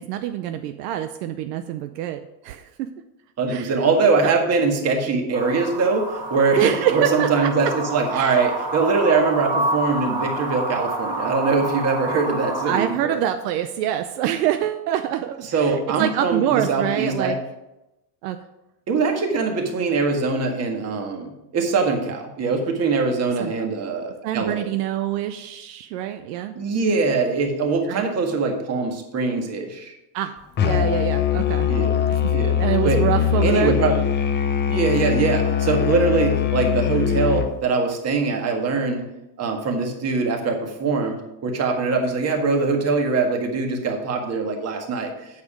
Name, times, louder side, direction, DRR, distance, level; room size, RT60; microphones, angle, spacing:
voice 1, 0.0-2.9 3.5-3.8 4.2-4.3 6.6-7.5 8.1-8.4 12.6-17.4 18.2-18.4 23.4-23.5 24.2-26.5 27.9-28.1 30.1-31.7 32.1-32.3 32.6-33.7, right 11 dB, 75° right, 8 dB, 0.7 m, -25 dB
voice 2, 3.4-13.2 15.4-17.3 18.9-24.7 26.5-29.9 31.7-31.9 32.3-32.5 32.8-33.0 33.4-34.0 34.7-39.1 39.4-45.3, right 4 dB, 30° right, 3 dB, 1.8 m, -22 dB
sound 1, 5.3-12.9, right 2 dB, 10° right, 2.0 m, -28 dB
Musical instrument, 30.6-37.6, left 8 dB, 20° left, 0.6 m, -21 dB
8.5 x 6.7 x 5.0 m, 0.94 s
supercardioid pair, 130°, 48 cm